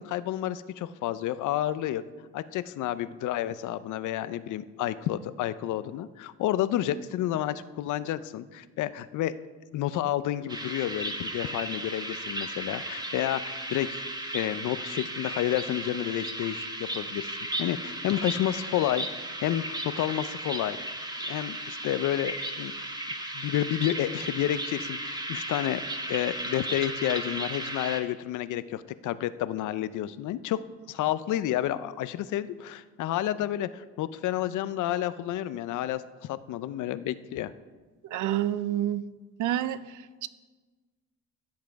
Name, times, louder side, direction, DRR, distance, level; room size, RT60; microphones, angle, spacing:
voice 1, 0.0-2.0 2.3-9.3 9.7-14.0 14.3-16.7 16.9-17.3 17.6-19.1 19.4-20.8 21.2-22.9 23.3-25.8 26.1-30.6 30.9-37.5, left 12 dB, 80° left, 15 dB, 0.6 m, -30 dB
sound 1, 10.5-28.0, right 1 dB, 15° right, 1.3 m, -35 dB
voice 2, 38.0-39.0 39.4-40.3, right 12 dB, 80° right, 15 dB, 0.6 m, -29 dB
15.0 x 7.5 x 4.6 m, 1.3 s
cardioid pair, 90°, 30 cm